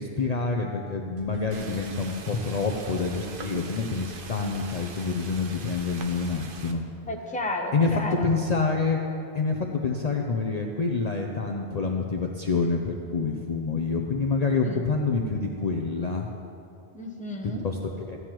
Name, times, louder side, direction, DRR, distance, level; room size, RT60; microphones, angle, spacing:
voice 1, 0.0-6.8 7.7-9.0 9.3-16.3 17.4-18.2, left 4 dB, 45° left, 1 dB, 0.6 m, -27 dB
sound 1, 1.2-6.4, right 1 dB, 85° right, 1.8 m, -51 dB
sound 2, 1.5-6.7, right 4 dB, 60° right, 0.9 m, -42 dB
voice 2, 7.1-8.3 14.5-14.8 16.9-17.7, left 1 dB, 10° left, 1 dB, 0.8 m, -33 dB
15.0 x 9.5 x 3.0 m, 2.6 s
omnidirectional pair, 1.0 m